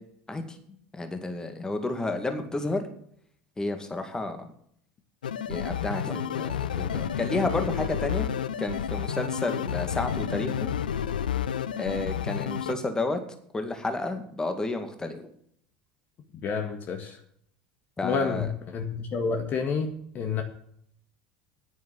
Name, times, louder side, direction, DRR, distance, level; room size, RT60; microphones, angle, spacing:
voice 1, 0.9-2.8 3.6-4.5 5.5-8.3 8.6-10.7 11.8-13.2 13.5-15.3 18.0-18.5, left 2 dB, 15° left, 6 dB, 2.2 m, -31 dB
sound 1, 5.2-12.7, left 9 dB, 80° left, 0.5 m, -30 dB
voice 2, 16.4-17.2 18.0-20.4, left 5 dB, 40° left, 5 dB, 1.7 m, -29 dB
10.0 x 9.1 x 7.5 m, 0.66 s
figure-of-eight pair, 75°, 5 cm